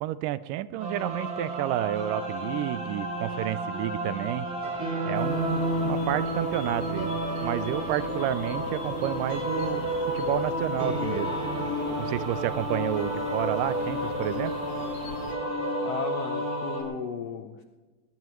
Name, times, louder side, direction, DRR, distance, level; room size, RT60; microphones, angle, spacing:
voice 1, 0.0-4.5 5.1-7.2 7.4-9.8 10.1-11.4 12.0-14.5, right 13 dB, 85° right, 15 dB, 2.2 m, -30 dB
sound 1, 0.8-16.8, equal, 40° right, 6.5 m, -31 dB
sound 2, 5.1-15.3, left 3 dB, 55° left, 2.5 m, -40 dB
voice 2, 15.8-17.6, left 7 dB, 75° left, 6 dB, 1.5 m, -35 dB
21.5 x 20.0 x 3.1 m, 1.3 s
omnidirectional pair, 3.8 m